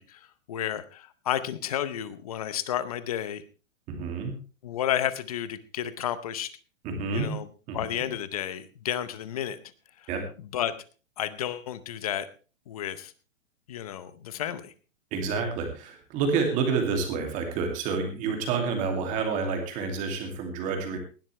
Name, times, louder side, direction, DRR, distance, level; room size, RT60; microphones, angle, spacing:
voice 1, 0.0-3.4 4.6-6.5 7.1-7.5 7.7-9.6 10.0-10.1 10.4-10.7 11.2-12.3 12.7-13.1 13.7-14.7, left 11 dB, 30° left, 14 dB, 0.7 m, -31 dB
voice 2, 3.9-4.3 6.8-7.3 7.7-7.8 10.1-10.2 15.1-21.0, right 5 dB, 20° right, 3 dB, 2.5 m, -28 dB
18.0 x 12.0 x 3.3 m, 0.35 s
hypercardioid pair, 170°, 40 cm